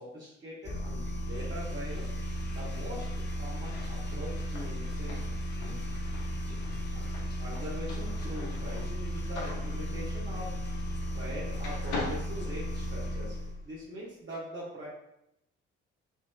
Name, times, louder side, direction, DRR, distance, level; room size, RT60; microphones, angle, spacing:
voice 1, 0.0-2.1 2.5-3.1 3.4-5.2 5.6-5.8 6.4-6.5 6.9-7.0 7.4-10.6 11.1-13.4 13.6-14.9, equal, 35° right, -8 dB, 1.3 m, -42 dB
sound 1, 0.6-13.6, equal, 30° left, 0.9 m, -35 dB
sound 2, 3.5-11.3 11.6-13.2, left 3 dB, 65° left, 1.0 m, -43 dB
4.8 x 3.0 x 2.2 m, 0.81 s
hypercardioid pair, 50°, 32 cm